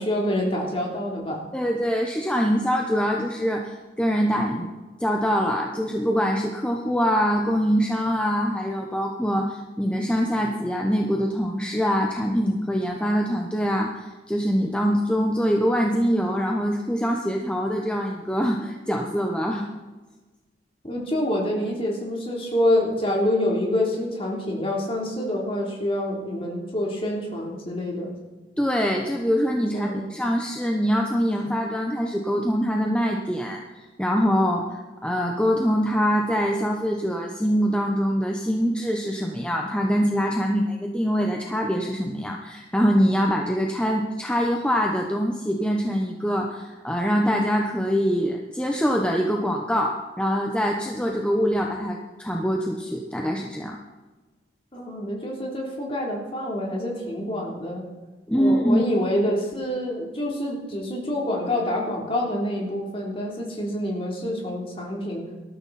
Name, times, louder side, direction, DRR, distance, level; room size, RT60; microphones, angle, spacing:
voice 1, 0.0-1.4 20.8-28.1 29.7-30.0 54.7-57.9 58.3-65.3, left 1 dB, 30° left, -2 dB, 3.6 m, -27 dB
voice 2, 1.5-4.7 5.0-19.6 28.6-33.6 34.0-53.8 58.3-58.8, equal, 5° left, 0 dB, 1.1 m, -24 dB
19.5 x 13.5 x 4.3 m, 1.2 s
head